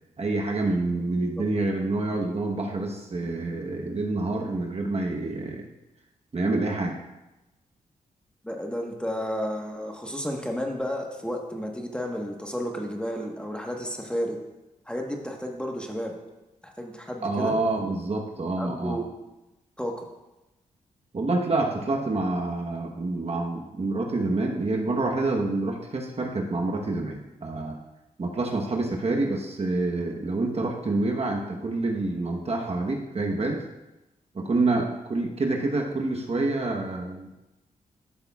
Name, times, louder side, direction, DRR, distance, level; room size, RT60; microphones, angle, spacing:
voice 1, 0.2-5.7 6.3-6.9 17.2-19.0 21.1-27.8 28.2-33.6 34.3-37.3, right 2 dB, 45° right, 1 dB, 1.2 m, -27 dB
voice 2, 8.4-14.4 14.9-16.1 16.6-17.5 18.6-19.0 19.8-20.1, equal, 5° left, 1 dB, 1.3 m, -32 dB
12.0 x 6.6 x 2.4 m, 1.0 s
cardioid pair, 55°, 15 cm